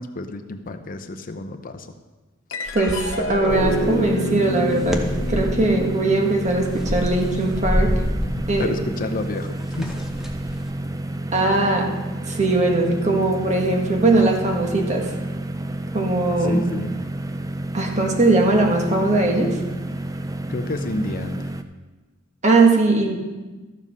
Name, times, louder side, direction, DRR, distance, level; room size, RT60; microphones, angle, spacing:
voice 1, 0.0-1.9 8.3-9.9 16.4-16.9 20.5-21.5, left 2 dB, 45° left, 8 dB, 0.7 m, -30 dB
sound 1, 2.5-9.2, left 1 dB, 70° left, 1.0 m, -30 dB
voice 2, 2.6-8.0 8.5-8.7 11.3-12.0 12.3-15.2 15.9-16.7 17.7-19.6 22.4-23.2, right 2 dB, 35° right, 1 dB, 1.6 m, -20 dB
sound 2, 2.7-4.0 4.5-5.7 6.3-10.7, equal, ahead, 1.0 m, -27 dB
sound 3, 3.5-21.6, right 1 dB, 15° right, 0.5 m, -30 dB
13.5 x 7.3 x 5.5 m, 1.2 s
head